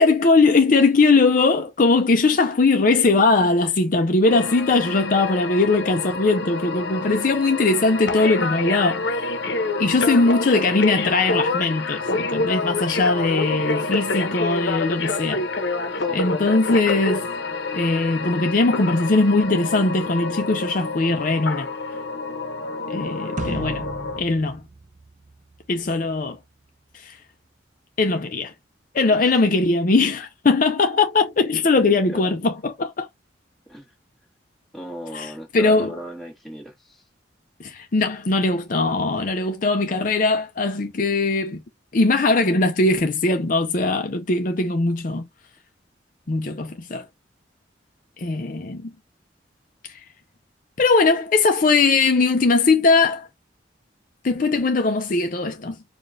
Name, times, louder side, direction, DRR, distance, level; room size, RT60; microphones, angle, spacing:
voice 1, 0.0-9.0 9.8-15.5 16.1-17.3 17.7-21.7 22.9-23.9 24.2-24.6 25.7-26.4 26.9-27.2 28.0-28.5 28.9-33.1 35.1-36.0 37.6-41.6 41.9-45.3 46.3-47.1 48.2-48.9 49.9-50.0 50.8-53.3 54.2-55.8, left 3 dB, 45° left, 0.5 m, -20 dB
sound 1, 4.3-24.2, left 3 dB, 65° left, 0.9 m, -27 dB
sound 2, 23.4-25.8, right 2 dB, 40° right, 0.5 m, -34 dB
voice 2, 34.7-37.0, equal, ahead, 1.4 m, -37 dB
4.9 x 2.4 x 2.6 m
head